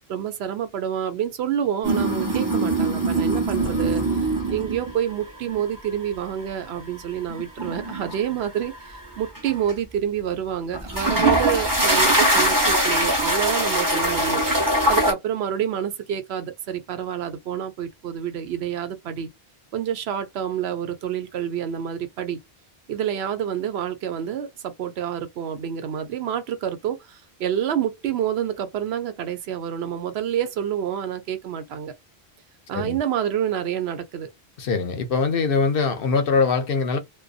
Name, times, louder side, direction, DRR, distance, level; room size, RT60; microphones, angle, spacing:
voice 1, 0.1-19.3 19.7-22.4 22.9-31.9 32.7-34.3, right 9 dB, 85° right, 0.9 m, -28 dB
sound 1, 1.8-5.0 5.5-5.8 7.3-9.0 9.4-9.7 10.7-15.1, right 1 dB, 20° right, 0.9 m, -22 dB
voice 2, 34.6-37.0, left 4 dB, 65° left, 0.7 m, -22 dB
2.5 x 2.2 x 2.3 m
omnidirectional pair, 1.1 m